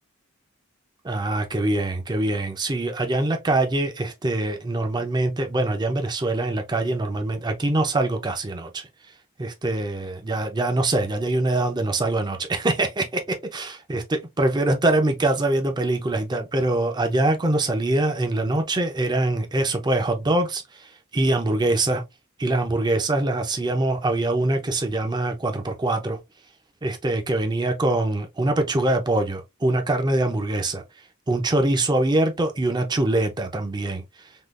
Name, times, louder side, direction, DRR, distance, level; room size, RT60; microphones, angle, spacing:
voice 1, 1.0-8.9 9.4-22.0 22.4-26.2 26.8-30.8 31.3-34.0, right 2 dB, 20° right, 0.5 m, -24 dB
3.6 x 2.4 x 2.4 m
head